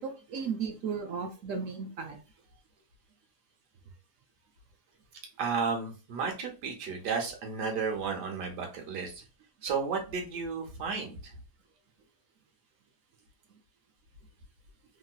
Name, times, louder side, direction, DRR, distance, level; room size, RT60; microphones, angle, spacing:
voice 1, 0.0-2.2, right 6 dB, 70° right, 4 dB, 0.8 m, -35 dB
voice 2, 5.4-9.2 9.6-11.3, right 5 dB, 90° right, 2 dB, 1.4 m, -33 dB
3.0 x 2.8 x 2.3 m, 0.32 s
omnidirectional pair, 1.7 m